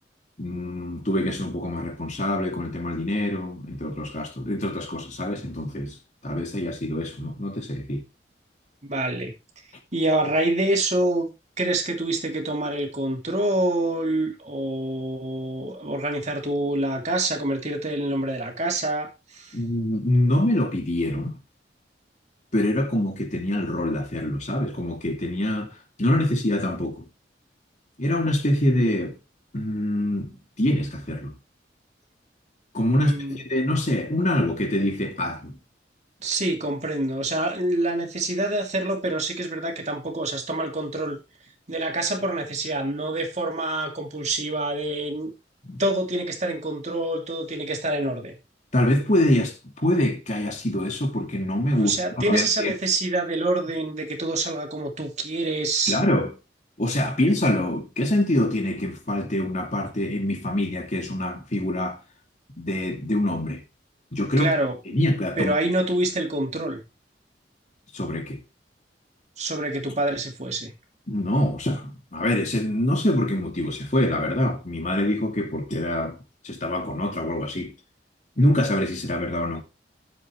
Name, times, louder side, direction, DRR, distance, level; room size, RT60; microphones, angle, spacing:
voice 1, 0.4-6.0 6.2-8.0 19.5-21.4 22.5-27.0 28.0-29.2 29.5-31.3 32.7-35.6 45.6-45.8 48.7-52.0 52.3-52.7 55.9-56.3 56.8-62.0 62.6-63.6 64.1-64.5 64.9-65.5 67.9-68.4 71.1-76.2 76.4-77.8 78.4-79.6, left 1 dB, 45° left, 2.6 m, -25 dB
voice 2, 8.8-9.3 9.9-11.3 11.6-19.6 33.0-33.4 36.2-41.2 41.7-45.3 45.8-48.3 51.7-56.0 64.4-65.0 65.4-66.8 69.4-70.7, right 2 dB, 40° right, 2.7 m, -26 dB
12.0 x 7.6 x 3.2 m
head